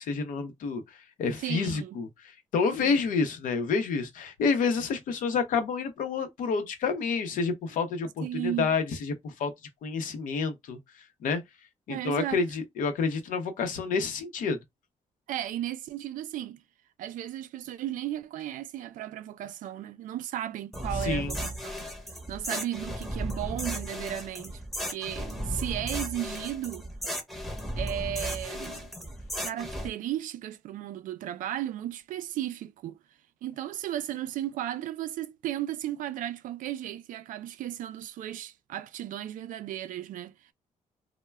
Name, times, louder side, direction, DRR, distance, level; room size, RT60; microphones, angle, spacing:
voice 1, 0.0-9.5 9.8-10.8 11.2-11.4 11.9-14.6 21.0-21.4, left 5 dB, 80° left, 0.7 m, -29 dB
voice 2, 1.4-2.0 2.8-3.0 8.2-8.7 11.9-12.4 15.3-16.6 17.0-21.9 22.3-24.6 24.9-26.9 27.8-28.9 29.4-33.0 33.4-40.3, right 12 dB, 80° right, 0.4 m, -35 dB
sound 1, 20.7-29.9, equal, ahead, 0.7 m, -35 dB
2.2 x 2.1 x 3.2 m
cardioid pair, 110°, 14 cm